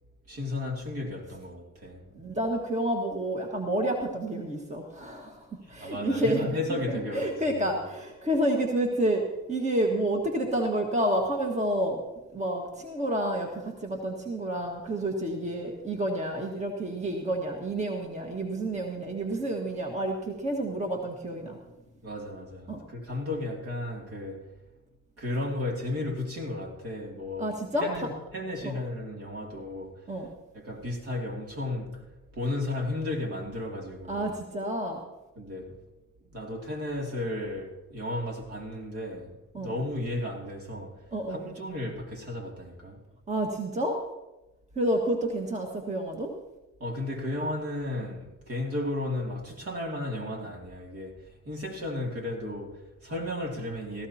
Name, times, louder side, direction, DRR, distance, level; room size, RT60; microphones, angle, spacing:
voice 1, 0.3-2.1 5.6-7.7 22.0-24.5 25.2-30.3 30.5-34.3 35.4-35.8 36.2-43.0 46.8-54.1, left 1 dB, 50° right, 2.8 m, -34 dB
voice 2, 2.1-6.5 7.1-12.0 12.3-21.6 22.7-22.8 27.4-27.9 28.6-28.7 30.1-30.3 34.1-35.0 39.5-39.7 41.1-41.5 43.3-44.0 44.7-46.3, right 1 dB, 25° right, 1.7 m, -29 dB
18.0 x 15.0 x 2.9 m
cardioid pair, 90°, 30 cm